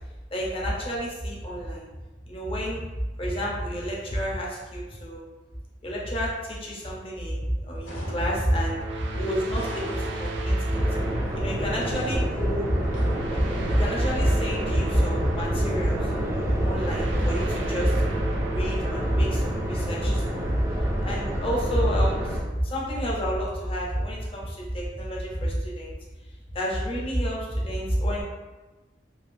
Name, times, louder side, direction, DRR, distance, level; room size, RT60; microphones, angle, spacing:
voice 1, 0.3-1.8 2.3-2.8 3.2-5.2 5.8-10.8 11.1-12.8 13.3-13.5 13.7-18.0 18.5-25.9 26.5-28.2, equal, 30° left, -3 dB, 0.7 m, -28 dB
sound 1, 7.8-8.7 9.5-10.6 11.8-12.5 12.9-13.3, equal, 85° left, 0.7 m, -42 dB
sound 2, 8.1-21.4, right 2 dB, 80° right, 0.4 m, -36 dB
sound 3, 10.7-22.4, equal, 15° right, 0.4 m, -29 dB
3.3 x 2.6 x 2.6 m, 1.2 s
head